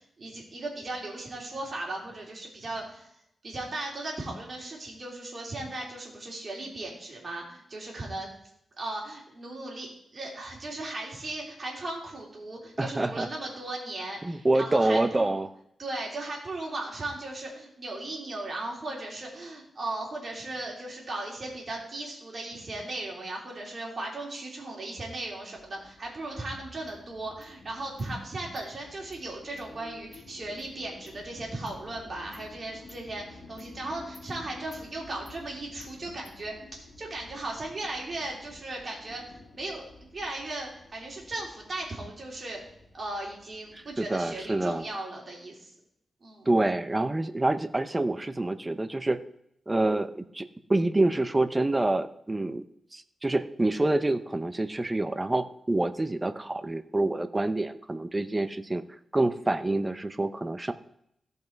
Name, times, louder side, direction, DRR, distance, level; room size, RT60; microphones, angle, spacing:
voice 1, 0.0-3.1 3.4-8.3 8.8-15.4 15.8-39.8 40.1-42.6 42.9-45.7 46.2-46.5, right 2 dB, 45° right, -1 dB, 3.4 m, -37 dB
voice 2, 12.8-13.3 14.2-15.5 43.7-44.8 46.5-49.2 49.7-52.6 52.9-58.8 59.1-60.7, right 2 dB, 20° right, 11 dB, 0.7 m, -27 dB
sound 1, 25.6-44.9, left 2 dB, 70° left, 1.8 m, -51 dB
Insect, 26.9-27.0 27.4-27.5 28.0-28.1 28.6-28.7 29.1-29.2 29.6-29.7 30.1-30.2 30.6-30.7 31.1-31.2 31.7-31.8 32.3-32.5 32.9-33.0 33.6-33.7 34.1-34.3 34.7-34.8 35.3-35.4 35.8-35.9 36.2-36.4, left 2 dB, 25° left, 2.7 m, -55 dB
15.0 x 5.5 x 4.6 m, 0.73 s
wide cardioid pair, 105°, 0 cm